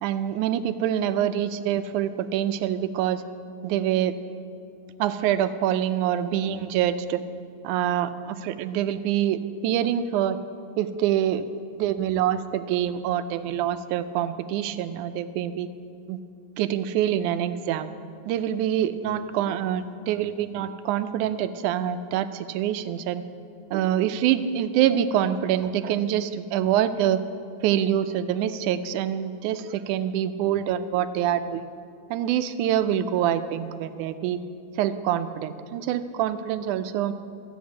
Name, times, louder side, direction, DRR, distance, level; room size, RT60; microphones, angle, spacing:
voice 1, 0.0-3.2 3.6-4.1 5.0-7.2 7.6-10.4 10.8-11.5 11.8-15.7 16.1-16.2 16.6-17.9 18.3-23.2 23.7-27.2 27.6-31.6 32.1-34.4 34.8-37.1, right 10 dB, 85° right, 11 dB, 2.1 m, -25 dB
14.0 x 7.9 x 8.4 m, 2.4 s
omnidirectional pair, 3.5 m